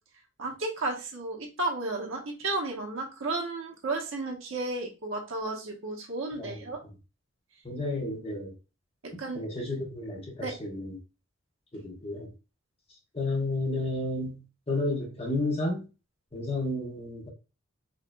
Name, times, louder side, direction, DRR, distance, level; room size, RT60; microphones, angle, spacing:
voice 1, 0.4-6.8 9.2-9.4 10.4-10.5, right 2 dB, 70° right, 1.1 m, -33 dB
voice 2, 6.4-6.9 7.6-8.5 9.3-11.0 11.7-12.3 13.1-14.4 14.7-15.8 16.3-17.3, left 2 dB, 30° left, 1.1 m, -32 dB
4.9 x 2.9 x 2.2 m
head